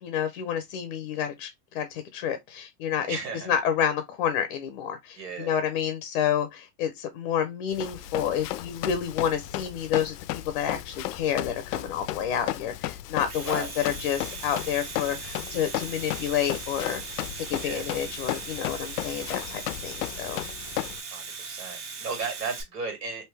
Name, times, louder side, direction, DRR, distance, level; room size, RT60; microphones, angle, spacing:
voice 1, 0.0-3.2 3.5-17.0 17.3-20.4, left 9 dB, 35° left, 0.5 m, -29 dB
voice 2, 3.1-3.5 5.2-5.6 13.5-13.7 17.6-17.9 21.1-23.3, right 4 dB, 90° right, 2.1 m, -35 dB
Run, 7.7-21.0, left 14 dB, 85° left, 0.5 m, -35 dB
Domestic sounds home sounds, 13.1-22.6, right 5 dB, 50° right, 1.4 m, -39 dB
3.3 x 2.6 x 3.3 m
supercardioid pair, 145°, 47 cm